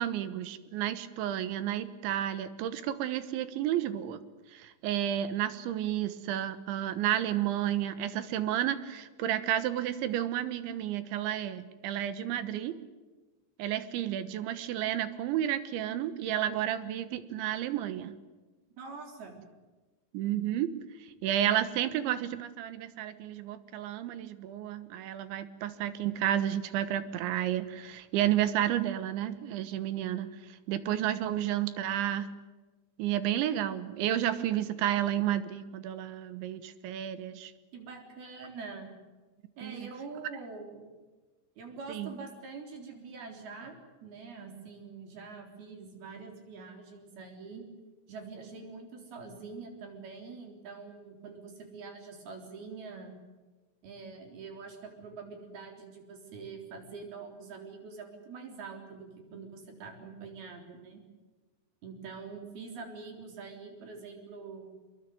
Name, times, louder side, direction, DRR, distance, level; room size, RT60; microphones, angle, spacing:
voice 1, 0.0-4.2 4.5-12.8 13.6-18.2 20.1-20.7 21.0-32.3 33.0-37.5 39.6-39.9 41.9-42.1, right 11 dB, 75° right, 13 dB, 3.4 m, -31 dB
voice 2, 18.8-19.4 37.7-39.0 39.6-40.9 41.6-47.6 48.1-53.1 53.8-61.0 61.8-64.8, right 4 dB, 50° right, 4 dB, 5.4 m, -45 dB
24.5 x 21.5 x 9.3 m, 1.3 s
omnidirectional pair, 5.8 m